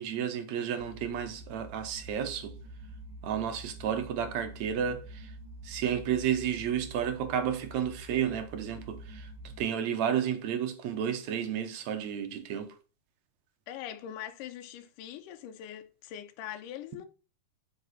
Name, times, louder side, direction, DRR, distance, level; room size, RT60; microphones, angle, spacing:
voice 1, 0.0-2.5 3.2-5.3 5.6-12.8, right 9 dB, 70° right, 1.9 m, -32 dB
sound 1, 0.8-9.6, right 1 dB, 10° left, 4.3 m, -47 dB
voice 2, 13.7-17.1, left 10 dB, 75° left, 2.2 m, -42 dB
8.5 x 5.1 x 4.1 m
omnidirectional pair, 4.0 m